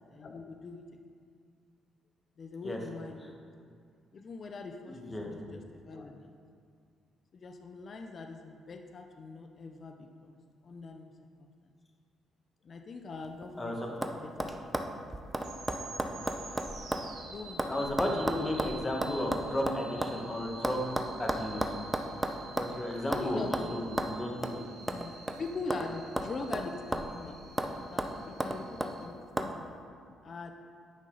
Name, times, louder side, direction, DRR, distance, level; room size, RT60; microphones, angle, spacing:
voice 1, 0.1-0.8 2.4-3.4 4.1-6.3 7.3-10.3 10.6-11.1 11.4-11.5 12.6-14.5 16.1-16.3 17.3-17.8 23.1-23.7 24.9-25.1 25.4-27.4 27.8-29.7 30.2-30.5, left 3 dB, 45° left, 5 dB, 0.5 m, -42 dB
voice 2, 4.9-5.3 13.6-13.9 17.7-20.8 21.2-21.7 22.5-23.4 23.7-24.6, left 1 dB, 20° left, 0 dB, 1.4 m, -33 dB
sound 1, 13.2-13.6 14.0-14.1 14.4-17.1 17.4-20.2 20.6-22.8 23.1-23.3 23.5-23.7 24.0-24.1 24.4-24.6 24.9-25.9 26.2-27.2 27.6-27.7 28.0-28.9 29.4-29.5, right 1 dB, 10° right, 0.6 m, -33 dB
sound 2, 15.4-29.1, right 3 dB, 80° right, 1.6 m, -50 dB
9.5 x 5.5 x 3.9 m, 2.2 s
cardioid pair, 90°, 0 cm